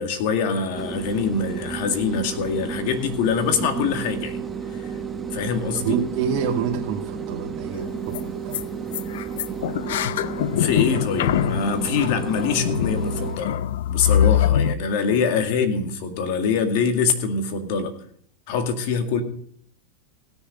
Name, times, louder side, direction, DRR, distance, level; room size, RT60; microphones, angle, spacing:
voice 1, 0.0-4.4 4.7-4.9 5.3-6.0 10.6-13.6 13.9-17.9 18.5-19.2, left 6 dB, 60° left, 6 dB, 2.1 m, -24 dB
sound 1, 0.7-13.4, right 7 dB, 15° right, 1.0 m, -32 dB
voice 2, 5.7-8.6 15.0-15.2, right 7 dB, 50° right, -2 dB, 2.2 m, -27 dB
sound 2, 7.7-7.8 8.1-8.2 8.5-8.6 8.9-14.7, left 10 dB, 75° left, 0.5 m, -23 dB
17.0 x 6.9 x 5.3 m, 0.65 s
supercardioid pair, 135°, 0 cm